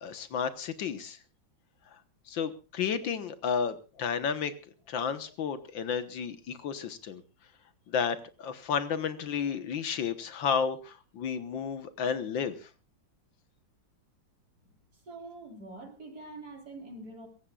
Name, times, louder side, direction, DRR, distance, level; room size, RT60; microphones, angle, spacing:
voice 1, 0.0-1.2 2.3-4.5 4.9-7.2 7.9-12.6, left 7 dB, 75° left, 11 dB, 2.0 m, -32 dB
voice 2, 14.6-17.3, right 2 dB, 50° right, 3 dB, 4.3 m, -45 dB
23.0 x 17.0 x 2.4 m, 0.33 s
omnidirectional pair, 2.1 m